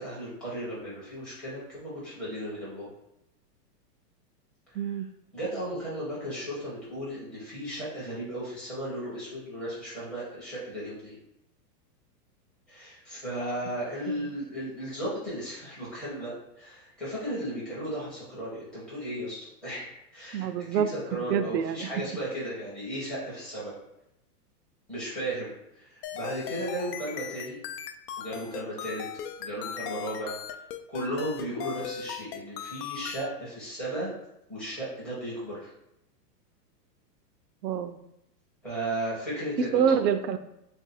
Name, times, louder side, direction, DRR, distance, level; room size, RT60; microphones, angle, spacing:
voice 1, 0.0-2.9 4.7-5.0 5.3-11.2 12.7-23.7 24.9-27.6 28.2-29.0 29.4-30.3 30.9-34.1 34.5-35.7 38.6-40.0, right 1 dB, ahead, -10 dB, 0.6 m, -35 dB
voice 2, 4.7-5.1 20.3-22.0 37.6-38.0 39.7-40.4, right 8 dB, 80° right, 10 dB, 0.6 m, -27 dB
sound 1, 26.0-33.3, left 9 dB, 70° left, 0.6 m, -38 dB
3.4 x 2.6 x 4.2 m, 0.83 s
supercardioid pair, 170°, 49 cm